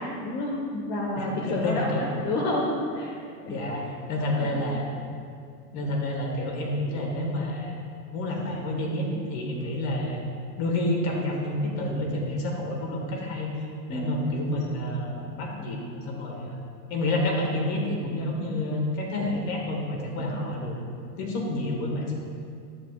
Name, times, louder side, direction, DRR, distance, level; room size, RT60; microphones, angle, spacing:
voice 1, 0.0-3.2 3.5-3.6 4.3-4.6 13.9-14.2 20.2-20.4, left 1 dB, 75° left, -3 dB, 1.4 m, -30 dB
voice 2, 1.1-2.0 3.5-4.8 5.7-7.7 8.1-10.2 10.6-13.5 13.9-15.8 16.0-16.5 16.9-20.8 21.2-22.1, left 1 dB, 50° left, 0 dB, 1.8 m, -29 dB
11.0 x 7.1 x 2.4 m, 2.4 s
hypercardioid pair, 130°, 50 cm